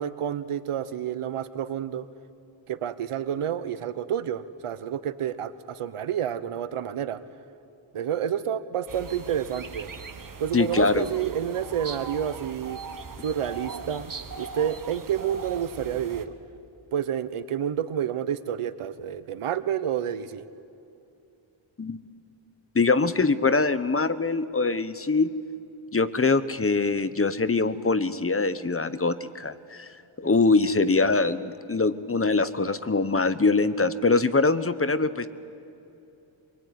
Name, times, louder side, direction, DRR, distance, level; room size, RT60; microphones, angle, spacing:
voice 1, 0.0-2.1 2.7-7.2 7.9-9.9 10.4-12.8 13.2-16.3 16.9-20.5 30.2-30.3, right 9 dB, 90° right, 13 dB, 1.1 m, -29 dB
sound 1, 8.9-16.3, right 5 dB, 40° right, 1.6 m, -40 dB
voice 2, 10.5-11.0 21.8-22.0 22.7-25.3 25.9-29.9 30.2-35.3, left 3 dB, 25° left, 13 dB, 1.0 m, -23 dB
24.0 x 23.0 x 9.3 m, 2.8 s
cardioid pair, 85°, 49 cm